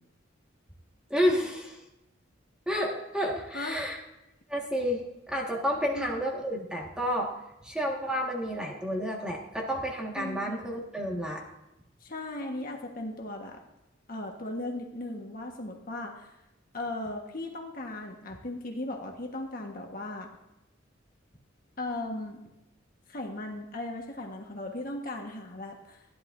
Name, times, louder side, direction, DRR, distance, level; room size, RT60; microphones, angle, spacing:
voice 1, 1.1-1.8 2.7-4.0 4.5-7.3 7.6-11.4, equal, 5° right, -2 dB, 1.6 m, -30 dB
voice 2, 5.8-6.1 10.1-10.6 12.0-13.6 14.1-16.3 16.7-20.3 21.8-22.4 23.1-26.0, left 2 dB, 45° left, 1 dB, 1.4 m, -37 dB
15.0 x 11.0 x 2.6 m, 0.92 s
head